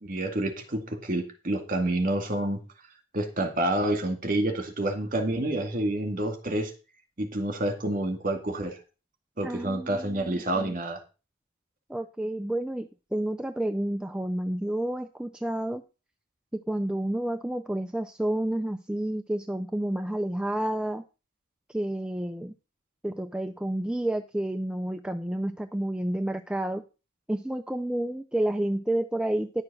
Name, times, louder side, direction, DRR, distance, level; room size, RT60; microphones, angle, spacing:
voice 1, 0.0-2.6 3.1-6.7 7.2-8.7 9.4-11.0, right 1 dB, 40° right, 6 dB, 2.2 m, -28 dB
voice 2, 9.4-10.7 11.9-15.8 16.5-21.0 21.7-22.5 23.0-26.8 27.3-29.6, right 1 dB, 5° right, 7 dB, 0.5 m, -30 dB
11.0 x 6.6 x 6.1 m, 0.31 s
head